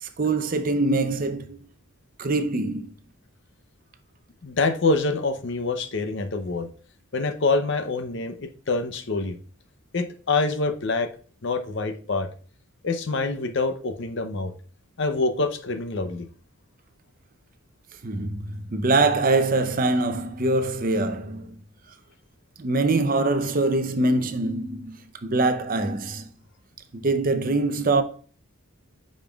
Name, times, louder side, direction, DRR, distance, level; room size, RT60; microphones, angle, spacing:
voice 1, 0.0-1.6 2.2-2.9 18.0-21.6 22.6-26.3 26.9-28.0, right 2 dB, 40° right, 0.6 m, -24 dB
voice 2, 4.4-6.7 7.1-9.4 9.9-11.1 11.4-12.3 12.8-14.5 15.0-16.3, left 3 dB, 55° left, 0.7 m, -26 dB
8.9 x 5.2 x 2.3 m
head